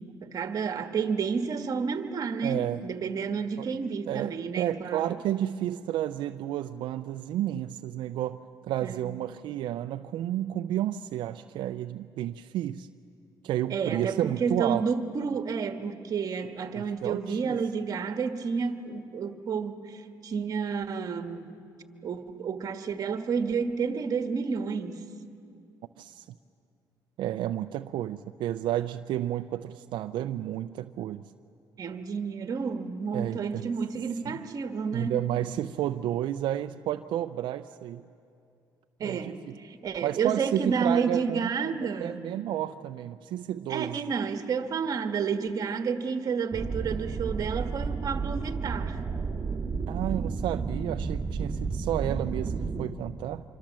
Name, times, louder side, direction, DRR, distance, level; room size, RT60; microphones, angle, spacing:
voice 1, 0.0-5.1 8.8-9.1 13.7-21.5 22.0-25.0 31.8-35.2 39.0-42.2 43.7-49.0, right 5 dB, 50° right, 8 dB, 1.5 m, -30 dB
voice 2, 2.4-2.8 3.6-3.7 4.1-8.4 8.7-12.9 13.4-14.8 16.7-17.6 26.0-26.2 27.2-31.3 33.1-33.7 34.9-38.0 39.0-39.5 40.0-44.0 49.9-53.4, right 12 dB, 80° right, 8 dB, 0.5 m, -31 dB
sound 1, 46.5-52.8, right 5 dB, 25° right, 1.9 m, -32 dB
25.5 x 25.5 x 7.5 m, 2.6 s
cardioid pair, 120°, 8 cm